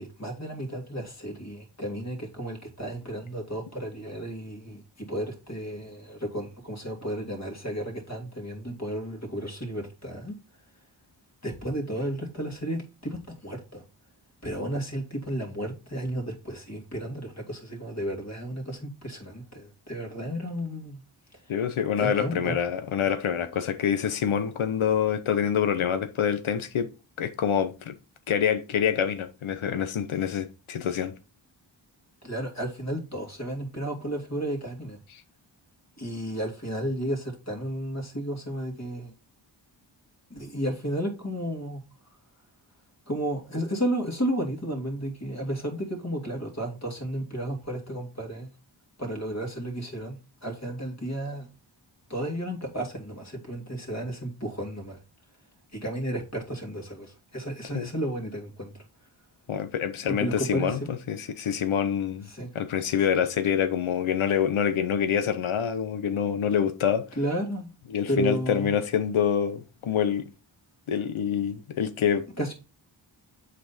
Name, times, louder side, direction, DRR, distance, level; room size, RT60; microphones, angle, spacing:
voice 1, 0.0-10.4 11.4-13.8 14.4-21.0 21.3-21.4 22.0-22.5 32.2-35.0 36.0-39.1 40.3-41.8 43.1-48.5 49.0-51.5 52.1-55.0 55.7-58.8 60.1-60.9 62.3-62.5 67.2-67.7 68.1-68.7 72.4-72.5, equal, 35° left, 2.5 m, -33 dB
voice 2, 21.5-26.9 27.2-27.9 28.3-31.1 57.7-57.9 59.5-62.3 62.5-67.0 67.9-70.3 70.9-72.3, left 8 dB, 85° left, 0.8 m, -26 dB
7.4 x 4.3 x 4.1 m
cardioid pair, 55°, 47 cm